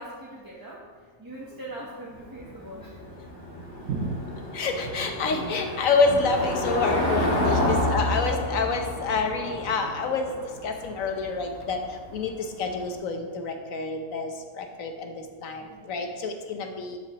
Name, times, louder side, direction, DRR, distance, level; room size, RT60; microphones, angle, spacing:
voice 1, 0.0-3.0 15.6-15.9, right 1 dB, 15° right, -6 dB, 1.0 m, -42 dB
Thunder, 1.3-12.3, right 4 dB, 80° right, 1.3 m, -42 dB
Car passing by / Engine, 2.1-12.8, left 1 dB, 40° left, 1.8 m, -30 dB
voice 2, 4.5-11.8 12.1-14.3 14.6-15.1 15.4-17.0, left 4 dB, 75° left, 5 dB, 1.3 m, -27 dB
12.0 x 7.4 x 3.0 m, 1.5 s
omnidirectional pair, 1.5 m